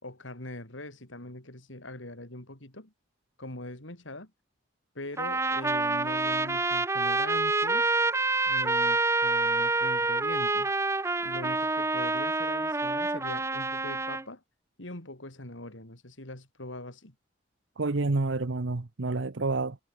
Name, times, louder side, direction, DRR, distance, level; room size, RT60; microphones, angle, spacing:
voice 1, 0.0-2.9 3.4-4.3 4.9-7.9 8.5-10.7 11.2-14.4 14.8-17.1, left 1 dB, 90° left, 4.8 m, -42 dB
Trumpet, 5.2-14.2, right 3 dB, 15° right, 0.8 m, -27 dB
voice 2, 17.8-19.8, right 3 dB, 85° right, 0.9 m, -29 dB
head